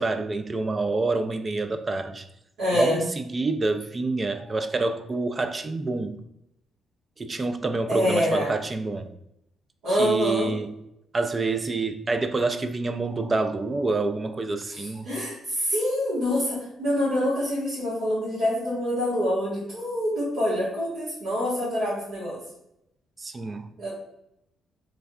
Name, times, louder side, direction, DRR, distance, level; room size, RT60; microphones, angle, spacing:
voice 1, 0.0-2.3 2.7-6.2 7.2-9.1 9.9-10.7 11.1-15.1 23.2-23.7, right 3 dB, 30° right, 10 dB, 0.3 m, -27 dB
voice 2, 2.6-3.0 7.9-8.5 9.8-10.5 14.7-22.4 23.8-23.9, equal, 85° right, -9 dB, 1.3 m, -26 dB
3.4 x 3.3 x 2.3 m, 0.81 s
cardioid pair, 90°, 0 cm